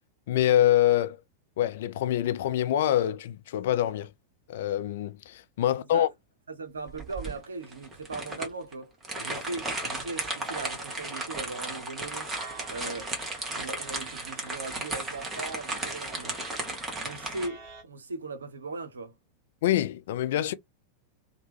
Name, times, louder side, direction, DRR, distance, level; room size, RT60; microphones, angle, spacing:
voice 1, 0.3-1.2 1.6-4.1 4.5-6.1 19.6-20.5, left 12 dB, 55° left, 0.4 m, -25 dB
voice 2, 6.5-8.9 9.2-12.3 12.7-13.1 13.5-16.4 17.0-19.1, right 3 dB, 70° right, 0.6 m, -38 dB
sound 1, 6.9-17.5, right 2 dB, 15° right, 1.1 m, -35 dB
sound 2, 12.4-17.8, right 3 dB, 45° right, 1.5 m, -48 dB
2.9 x 2.1 x 3.2 m
figure-of-eight pair, 90°, 0 cm